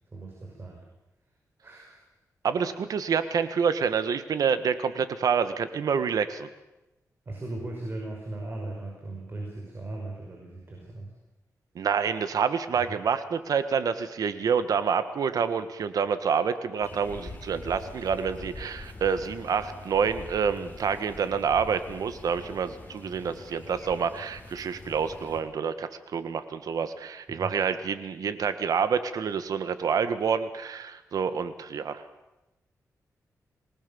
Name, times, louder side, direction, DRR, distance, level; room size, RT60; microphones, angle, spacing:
voice 1, 0.1-0.8 1.6-2.0 7.3-11.1 12.8-12.9 27.3-27.5, right 2 dB, 40° right, 0 dB, 5.6 m, -38 dB
voice 2, 2.4-6.5 11.8-32.0, right 6 dB, 80° right, 11 dB, 1.6 m, -27 dB
sound 1, 16.8-25.4, left 2 dB, 30° left, 3.9 m, -44 dB
26.0 x 19.0 x 7.1 m, 0.97 s
wide cardioid pair, 95°, 6 cm